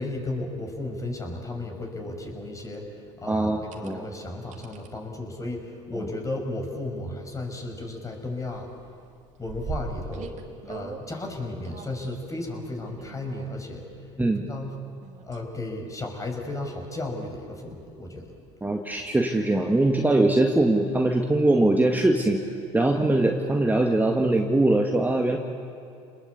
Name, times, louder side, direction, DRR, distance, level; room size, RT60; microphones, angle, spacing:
voice 1, 0.0-2.8 3.2-8.7 9.4-10.4 10.7-13.8 14.5-14.7 15.2-18.2, left 2 dB, 20° left, 2 dB, 6.2 m, -34 dB
sound 1, 2.6-2.8 3.5-3.9 4.5-4.9 6.1-6.3 6.8-6.9 7.1-8.1 8.4-11.1 11.7-12.2 12.9-13.7 15.0-15.5 16.1-16.2 18.5-18.6, right 5 dB, 55° right, 2.7 m, -41 dB
voice 2, 3.3-4.1 14.2-14.4 18.6-22.4 22.7-25.4, right 2 dB, 10° right, 2 dB, 2.0 m, -22 dB
29.5 x 20.0 x 8.5 m, 2.6 s
hypercardioid pair, 80°, 15 cm